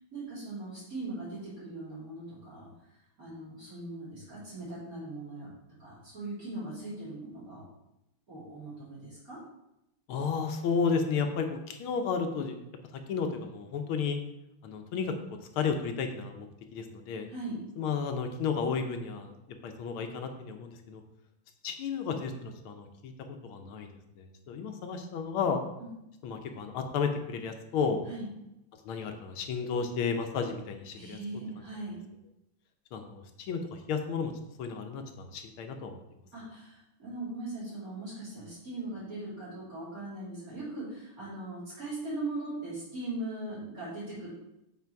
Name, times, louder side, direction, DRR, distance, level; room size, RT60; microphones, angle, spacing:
voice 1, 0.1-2.7 3.2-5.5 5.8-7.7 8.3-9.4 17.3-17.6 25.8-25.9 28.1-28.3 30.9-32.0 36.3-44.3, right 2 dB, 40° right, -9 dB, 3.5 m, -39 dB
voice 2, 10.1-12.6 12.9-14.2 14.6-16.5 16.7-17.3 17.8-19.3 19.6-21.0 21.6-23.1 23.4-23.9 24.2-25.6 26.2-28.0 28.8-31.2 32.9-34.3 34.6-36.0, left 5 dB, 75° left, 6 dB, 1.6 m, -32 dB
8.4 x 4.2 x 4.6 m, 0.88 s
omnidirectional pair, 2.4 m